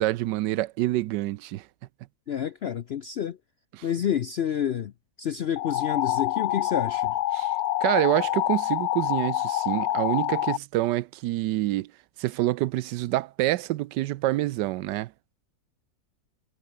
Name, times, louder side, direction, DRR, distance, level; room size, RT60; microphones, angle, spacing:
voice 1, 0.0-1.7 3.7-3.9 7.3-7.5 7.8-11.9 12.2-15.1, right 16 dB, 80° right, 1.2 m, -27 dB
voice 2, 2.3-3.4 3.8-4.9 5.2-7.2, left 9 dB, 85° left, 0.5 m, -29 dB
sound 1, 5.6-10.6, left 13 dB, 65° left, 1.0 m, -26 dB
omnidirectional pair, 1.9 m